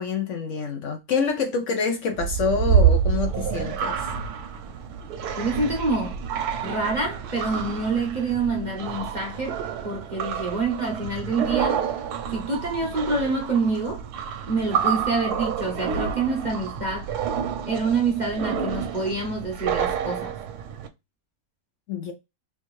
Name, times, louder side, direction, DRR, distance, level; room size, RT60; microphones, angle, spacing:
voice 1, 0.0-4.1 21.9-22.1, left 5 dB, 65° left, 0.8 m, -27 dB
sound 1, 2.1-20.9, right 7 dB, 80° right, 1.1 m, -28 dB
voice 2, 5.4-6.2 6.6-11.8 12.3-14.0 14.5-17.2 17.7-20.4, right 3 dB, 40° right, 0.7 m, -26 dB
3.4 x 2.7 x 3.0 m
omnidirectional pair, 1.6 m